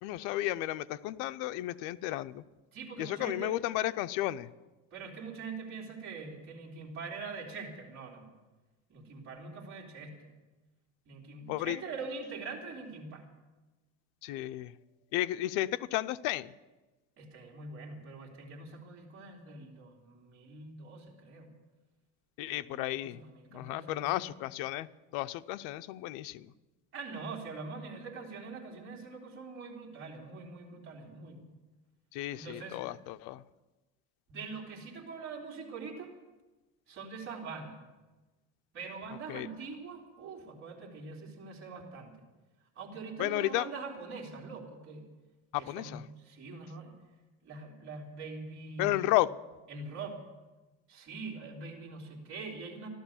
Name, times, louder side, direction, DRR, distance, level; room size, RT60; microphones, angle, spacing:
voice 1, 0.0-2.4 3.0-4.5 11.5-11.8 14.2-14.7 15.1-16.5 22.4-23.2 23.5-24.9 25.1-26.5 32.1-33.4 39.3-39.5 43.2-43.7 45.5-46.0 48.8-49.3, left 16 dB, 80° left, 13 dB, 0.7 m, -33 dB
voice 2, 2.7-3.5 4.9-8.3 8.9-10.3 11.0-13.2 17.2-21.5 22.5-24.3 26.9-31.4 32.3-32.8 34.3-36.1 36.9-37.8 38.7-42.2 42.7-45.1 45.6-46.9 47.4-49.1 49.7-50.2 50.9-52.9, right 4 dB, 40° right, -2 dB, 3.4 m, -43 dB
14.5 x 12.5 x 7.1 m, 1.2 s
cardioid pair, 145°, 32 cm